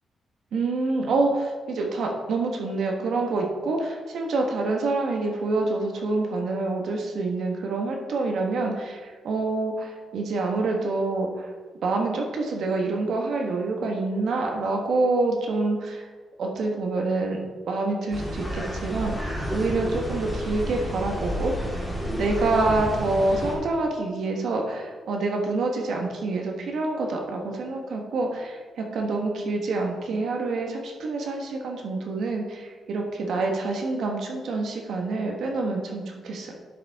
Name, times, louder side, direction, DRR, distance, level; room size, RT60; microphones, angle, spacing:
voice 1, 0.5-11.5 11.8-16.1 16.4-17.4 17.7-36.5, right 3 dB, 60° right, 1 dB, 1.5 m, -27 dB
sound 1, 18.1-23.5, equal, 5° left, 2.1 m, -30 dB
11.0 x 6.8 x 3.7 m, 1.5 s
wide cardioid pair, 175°, 0 cm